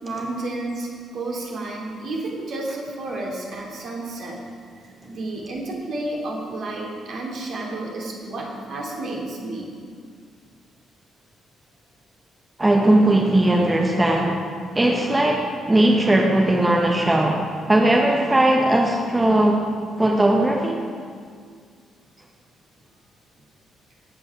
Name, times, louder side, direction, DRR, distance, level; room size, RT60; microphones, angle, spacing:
voice 1, 0.0-4.4 4.8-9.7, right 2 dB, 50° right, -2 dB, 2.7 m, -31 dB
voice 2, 12.6-14.5 14.7-19.7 20.0-20.8, right 1 dB, 15° right, 0 dB, 1.5 m, -18 dB
19.0 x 8.7 x 4.9 m, 2.1 s
figure-of-eight pair, 40°, 0 cm